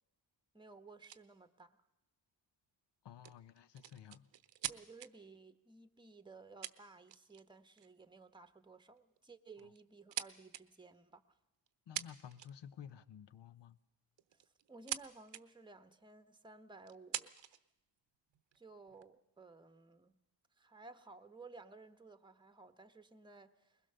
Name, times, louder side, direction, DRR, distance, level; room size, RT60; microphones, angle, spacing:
voice 1, 0.5-1.8 4.7-11.4 14.3-14.4 14.7-17.3 18.6-20.1 20.6-23.8, right 3 dB, 10° right, 1.1 m, -57 dB
sound 1, 1.0-1.2 3.2-5.1 6.2-6.3 6.6-7.4 7.8-8.0 9.0-9.2 9.6-10.6 11.7-11.8 11.9-12.7 14.2-15.0 15.3-15.4 16.1-16.2 16.9-17.6 18.3-19.0, right 12 dB, 70° right, 0.9 m, -44 dB
voice 2, 3.0-4.3 11.9-13.8, left 9 dB, 65° left, 1.0 m, -53 dB
21.5 x 20.5 x 6.8 m
cardioid pair, 110°, 46 cm